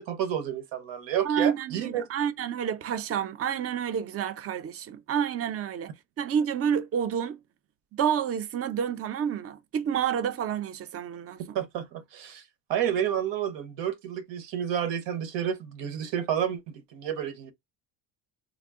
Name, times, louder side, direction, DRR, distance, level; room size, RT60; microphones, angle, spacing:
voice 1, 0.0-2.1 11.5-12.4 12.7-17.5, right 9 dB, 90° right, 0.9 m, -30 dB
voice 2, 1.2-7.4 7.9-11.6, right 8 dB, 35° right, 0.4 m, -29 dB
3.6 x 2.0 x 3.5 m
cardioid pair, 135°, 42 cm